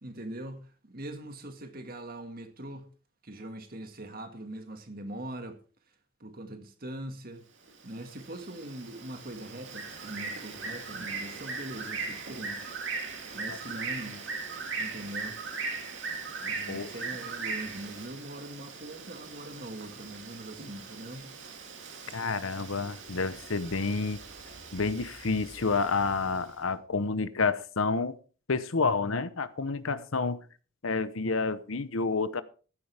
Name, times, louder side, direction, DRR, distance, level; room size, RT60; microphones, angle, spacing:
voice 1, 0.0-2.9 3.2-5.6 6.2-7.4 7.8-14.3 14.8-15.4 16.4-21.3, right 1 dB, 45° right, 1.9 m, -42 dB
Bird, 7.7-26.4, right 4 dB, 60° right, 3.0 m, -39 dB
voice 2, 22.1-24.2 24.7-28.1 28.5-30.4 30.8-32.4, left 4 dB, 75° left, 0.9 m, -29 dB
15.0 x 11.5 x 3.5 m
head